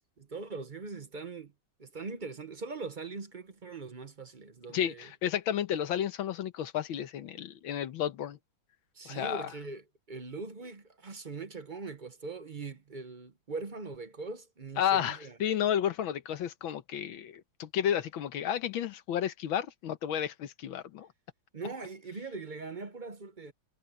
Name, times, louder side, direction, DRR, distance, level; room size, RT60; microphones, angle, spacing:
voice 1, 0.0-1.5 1.8-5.1 8.9-15.4 21.5-23.5, right 3 dB, 35° right, 0.7 m, -41 dB
voice 2, 4.7-8.4 9.1-9.4 14.8-21.1, left 10 dB, 85° left, 1.8 m, -32 dB
omnidirectional pair, 2.2 m